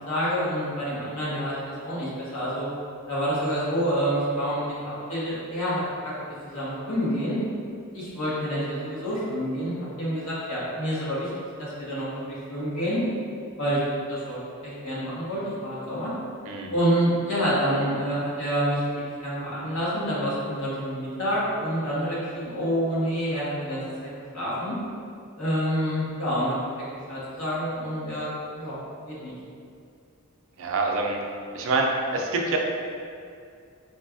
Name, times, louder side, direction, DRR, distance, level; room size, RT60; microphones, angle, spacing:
voice 1, 0.1-2.6 3.1-6.1 6.5-7.4 7.9-11.3 11.6-13.0 13.6-13.8 14.1-16.1 16.7-24.7 25.4-26.6 27.1-28.3 28.6-28.8 29.1-29.3, equal, 75° left, -9 dB, 1.1 m, -28 dB
voice 2, 30.6-31.2 31.5-32.6, right 3 dB, 65° right, 1 dB, 0.4 m, -26 dB
4.2 x 2.3 x 2.4 m, 2.4 s
head